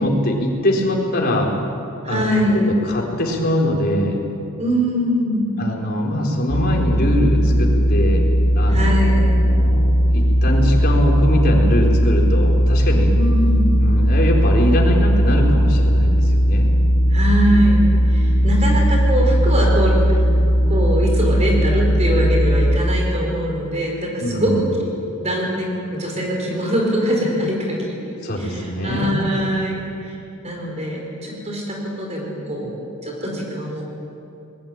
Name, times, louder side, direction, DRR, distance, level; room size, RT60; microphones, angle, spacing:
voice 1, 0.0-1.5 2.0-4.2 5.6-8.3 8.5-13.1 13.8-16.7 24.2-24.7 28.2-29.1, equal, 45° left, 0 dB, 4.3 m, -22 dB
voice 2, 2.0-2.6 4.6-5.6 8.7-9.4 13.1-13.7 17.1-17.8 18.1-20.0 20.7-24.9 25.2-30.2 30.4-32.7 33.0-33.8, equal, 30° right, -1 dB, 5.0 m, -22 dB
sound 1, 6.5-22.8, equal, 80° left, 2.6 m, -17 dB
21.5 x 21.0 x 9.0 m, 2.7 s
head